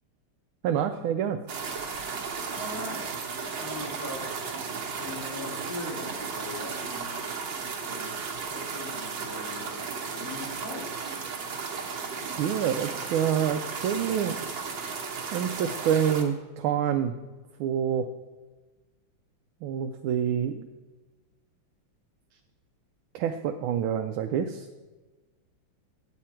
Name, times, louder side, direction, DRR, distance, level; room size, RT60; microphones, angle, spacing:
voice 1, 0.6-1.4 12.4-14.4 15.3-17.1 17.6-18.1 19.6-20.7 23.1-24.7, right 9 dB, 85° right, 6 dB, 1.4 m, -27 dB
sound 1, 1.5-16.2, right 5 dB, 65° right, 1.9 m, -35 dB
voice 2, 2.5-3.1 3.4-4.2 5.0-7.1 7.8-8.2 8.5-10.8, left 2 dB, 85° left, -4 dB, 3.7 m, -40 dB
9.7 x 8.4 x 4.4 m, 1.2 s
omnidirectional pair, 2.2 m